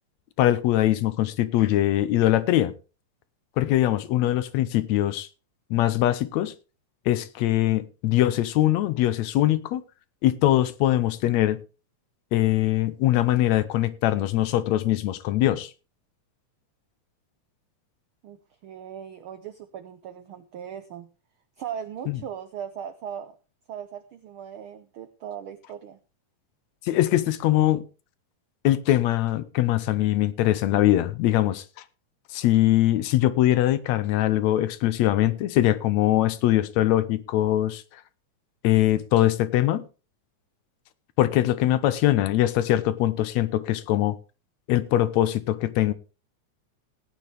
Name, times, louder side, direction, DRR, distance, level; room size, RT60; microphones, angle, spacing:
voice 1, 0.4-2.7 3.6-5.3 5.7-6.5 7.1-9.8 10.2-11.6 12.3-15.7 22.1-22.2 26.9-27.8 28.6-31.6 32.3-37.8 38.6-39.9 41.2-44.2 44.7-45.9, left 14 dB, 75° left, 1.9 m, -22 dB
voice 2, 18.6-21.1 21.6-23.3 23.7-26.0, right 9 dB, 90° right, 1.1 m, -38 dB
18.0 x 9.3 x 3.4 m
omnidirectional pair, 3.4 m